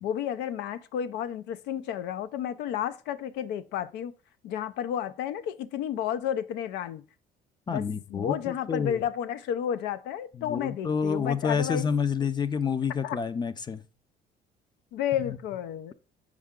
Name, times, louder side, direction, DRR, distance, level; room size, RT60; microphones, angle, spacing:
voice 1, 0.0-4.1 4.4-7.0 7.7-11.9 13.0-13.2 14.9-15.9, left 10 dB, 85° left, 0.5 m, -32 dB
voice 2, 7.7-9.0 10.4-13.8 15.2-15.4, left 6 dB, 25° left, 0.4 m, -28 dB
5.5 x 4.8 x 3.6 m
cardioid pair, 110°, 17 cm